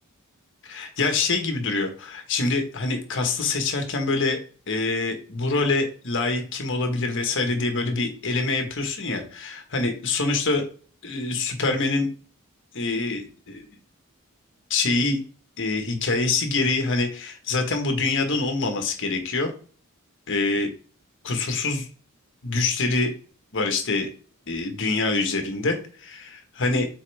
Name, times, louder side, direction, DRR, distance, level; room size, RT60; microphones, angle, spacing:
voice 1, 0.6-4.4 4.7-10.6 11.0-12.1 12.7-13.6 14.7-15.2 15.6-19.5 20.3-20.7 21.2-21.9 22.4-23.1 23.5-24.1 24.5-26.9, left 3 dB, 60° left, 5 dB, 1.5 m, -25 dB
7.5 x 4.2 x 3.5 m, 0.40 s
head